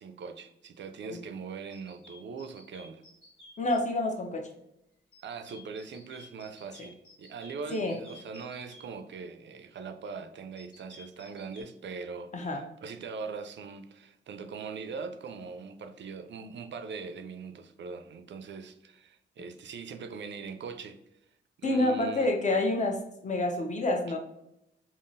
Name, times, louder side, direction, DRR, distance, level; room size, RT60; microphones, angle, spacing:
voice 1, 0.0-3.0 5.2-21.0 21.6-22.3, right 5 dB, 60° right, 9 dB, 0.4 m, -41 dB
sound 1, 1.7-3.8 5.1-8.9 10.6-11.6, left 2 dB, 75° left, 1.2 m, -53 dB
voice 2, 3.6-4.5 7.7-8.0 12.3-12.6 21.6-24.2, left 2 dB, 35° left, 2 dB, 0.7 m, -28 dB
3.7 x 2.0 x 2.5 m, 0.82 s
supercardioid pair, 45°, 21 cm